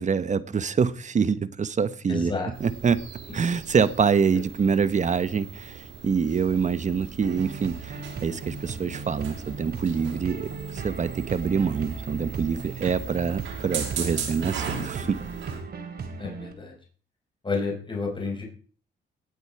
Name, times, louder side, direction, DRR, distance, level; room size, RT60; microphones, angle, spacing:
voice 1, 0.0-2.3 2.6-3.0 3.3-15.2, right 6 dB, 40° right, 14 dB, 1.1 m, -25 dB
voice 2, 2.1-2.5 4.3-4.4 16.2-16.7 17.4-18.4, left 4 dB, 25° left, 1 dB, 4.7 m, -30 dB
sound 1, 2.5-15.6, right 6 dB, 75° right, 4.6 m, -38 dB
sound 2, 7.2-16.5, right 5 dB, 55° right, 3.2 m, -37 dB
18.0 x 8.0 x 4.8 m, 0.42 s
cardioid pair, 90°, 20 cm